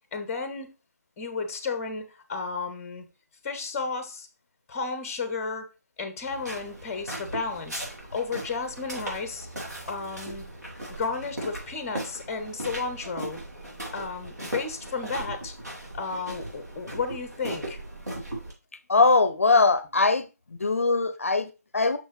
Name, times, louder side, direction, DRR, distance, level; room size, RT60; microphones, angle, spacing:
voice 1, 0.1-0.7 1.2-3.0 3.4-4.3 4.7-5.7 6.0-9.5 9.8-10.4 11.0-13.4 13.9-15.5 15.9-17.8, left 4 dB, 15° left, 0.7 m, -33 dB
sound 1, 6.3-18.5, right 1 dB, 75° right, 3.1 m, -38 dB
voice 2, 18.9-20.3 20.6-22.0, left 3 dB, 50° left, 0.5 m, -21 dB
6.2 x 5.4 x 3.2 m
figure-of-eight pair, 155°, 9 cm